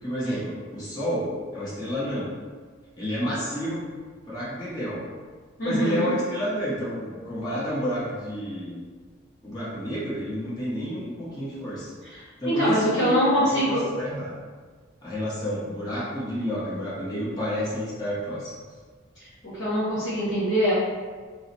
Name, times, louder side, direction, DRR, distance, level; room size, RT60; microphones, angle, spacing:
voice 1, 0.0-2.3 2.9-3.8 4.3-5.1 5.6-8.8 9.4-11.9 12.4-14.3 15.0-18.5, equal, 20° left, -9 dB, 0.9 m, -30 dB
voice 2, 5.6-6.1 12.1-13.8 19.2-19.3 19.5-20.7, equal, 50° left, -11 dB, 1.1 m, -24 dB
2.9 x 2.0 x 3.8 m, 1.5 s
head